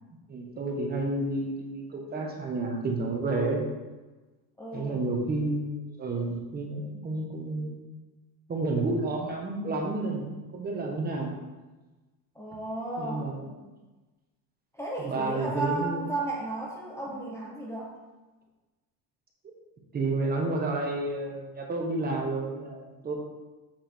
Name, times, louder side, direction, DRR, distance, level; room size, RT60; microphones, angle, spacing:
voice 1, 0.3-3.6 4.7-7.8 8.5-11.3 13.0-13.5 15.1-16.0 19.9-23.2, right 2 dB, 25° right, 0 dB, 1.2 m, -30 dB
voice 2, 4.6-5.0 12.3-13.3 14.7-17.9, right 2 dB, 5° left, -4 dB, 0.8 m, -34 dB
7.4 x 4.9 x 4.5 m, 1.2 s
cardioid pair, 155°, 40 cm